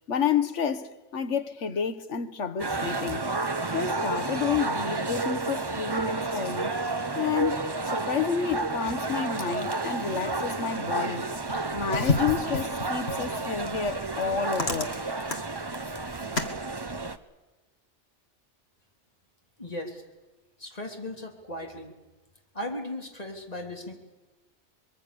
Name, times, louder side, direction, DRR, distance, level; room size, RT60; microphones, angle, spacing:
voice 1, 0.1-3.3 3.7-6.8 7.1-15.3, left 7 dB, 80° left, 1.5 m, -30 dB
sound 1, 2.6-17.2, right 3 dB, 25° right, 0.9 m, -31 dB
sound 2, 11.5-16.6, left 3 dB, 60° left, 2.3 m, -33 dB
voice 2, 19.6-20.0 20.6-21.9 22.5-23.9, left 1 dB, 35° left, 3.4 m, -37 dB
24.0 x 22.0 x 7.0 m
omnidirectional pair, 1.2 m